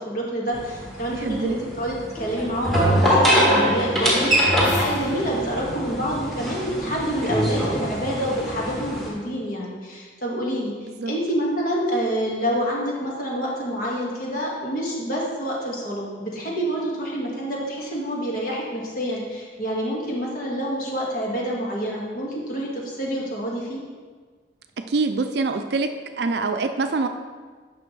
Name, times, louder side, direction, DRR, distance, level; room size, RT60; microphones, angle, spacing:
voice 1, 0.0-23.8, equal, 50° left, -3 dB, 1.9 m, -27 dB
sound 1, 0.5-9.1, equal, ahead, 1.7 m, -23 dB
voice 2, 1.1-1.6 11.0-11.1 24.9-25.9 26.2-27.1, right 3 dB, 65° right, 7 dB, 0.4 m, -24 dB
sound 2, 4.3-7.3, left 2 dB, 80° left, 1.1 m, -36 dB
10.5 x 6.0 x 3.3 m, 1.5 s
head